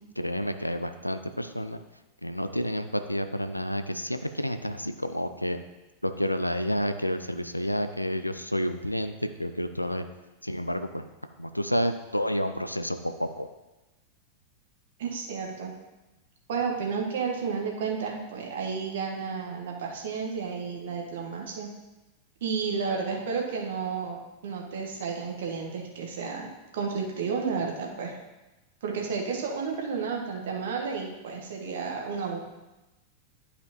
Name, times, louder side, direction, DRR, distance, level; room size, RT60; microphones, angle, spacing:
voice 1, 0.2-1.8 2.2-5.6 6.0-10.0 10.4-11.0 11.4-13.5, equal, 90° left, 9 dB, 0.4 m, -30 dB
voice 2, 15.0-15.7 16.5-21.7 22.4-26.5 26.7-28.2 28.8-32.4, right 5 dB, 60° right, 1 dB, 1.3 m, -32 dB
11.5 x 5.0 x 2.9 m, 1.1 s
figure-of-eight pair, 90°, 0 cm